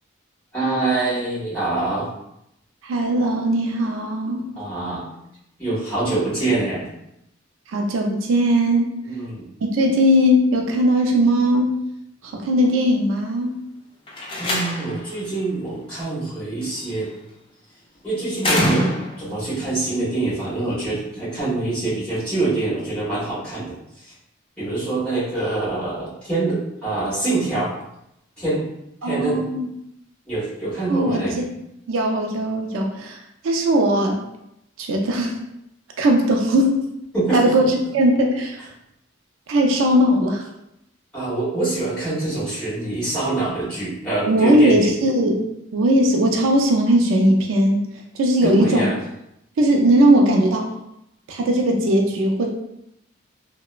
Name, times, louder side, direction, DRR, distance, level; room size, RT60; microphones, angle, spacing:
voice 1, 0.5-2.1 4.5-5.0 5.6-6.9 9.0-9.5 14.4-17.1 18.0-18.9 19.2-24.1 24.6-27.7 28.4-28.6 29.0-29.4 30.2-31.4 37.1-37.5 41.1-44.9 48.4-49.0, right 2 dB, 5° left, -12 dB, 1.3 m, -25 dB
voice 2, 2.8-4.5 7.7-8.9 9.7-11.8 12.2-13.6 29.0-29.7 30.9-31.5 31.9-33.2 33.4-34.2 34.8-35.4 36.0-36.8 37.3-38.6 39.5-40.5 44.3-45.5 45.7-47.8 48.1-48.9 49.6-50.7 51.3-52.5, equal, 80° right, 2 dB, 0.4 m, -19 dB
Slam, 14.1-15.1 16.6-17.0 18.4-19.4, left 1 dB, 25° left, 0.3 m, -24 dB
2.8 x 2.0 x 2.3 m, 0.82 s
head